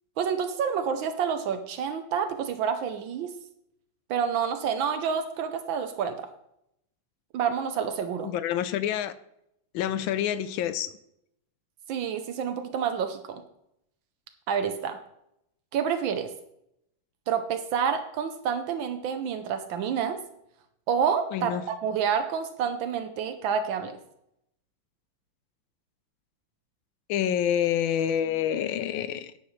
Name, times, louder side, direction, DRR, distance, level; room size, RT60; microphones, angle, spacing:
voice 1, 0.2-3.3 4.1-6.2 7.3-8.3 11.9-13.4 14.5-15.0 15.7-16.3 17.3-20.2 20.9-24.0, right 7 dB, 80° right, 8 dB, 1.5 m, -28 dB
voice 2, 8.2-9.1 9.7-10.9 21.3-21.6 27.1-29.3, left 10 dB, 90° left, 13 dB, 1.4 m, -27 dB
10.5 x 9.5 x 3.2 m, 0.77 s
omnidirectional pair, 2.1 m